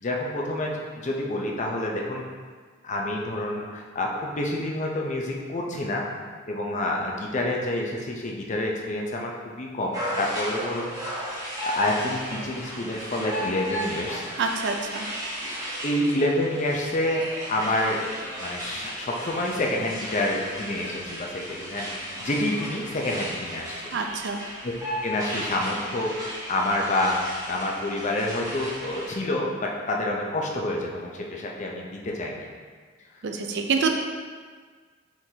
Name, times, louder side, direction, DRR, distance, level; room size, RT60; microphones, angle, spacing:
voice 1, 0.0-2.2 2.8-6.0 6.5-10.9 11.6-14.4 15.8-17.2 17.5-18.0 18.4-23.7 24.6-24.7 25.0-26.1 26.5-27.2 27.5-32.5, left 1 dB, 40° left, -1 dB, 0.6 m, -28 dB
sound 1, 9.9-29.1, equal, 20° right, 0.9 m, -35 dB
voice 2, 14.4-15.1 23.9-24.4 33.2-33.9, right 4 dB, 60° right, 4 dB, 0.4 m, -26 dB
4.6 x 3.8 x 2.7 m, 1.5 s
head